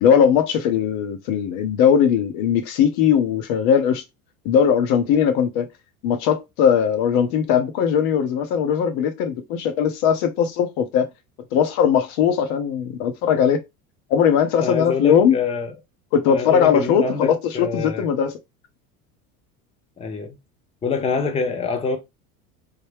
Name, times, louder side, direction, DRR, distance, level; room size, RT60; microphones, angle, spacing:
voice 1, 0.0-4.0 4.4-5.7 6.0-11.1 11.5-13.6 14.1-15.4 16.1-18.3, left 8 dB, 55° left, 0.8 m, -19 dB
voice 2, 14.6-15.7 16.3-18.1 20.0-20.4 20.8-22.0, left 5 dB, 15° left, 0.6 m, -26 dB
3.2 x 2.2 x 3.3 m
hypercardioid pair, 80°, 46 cm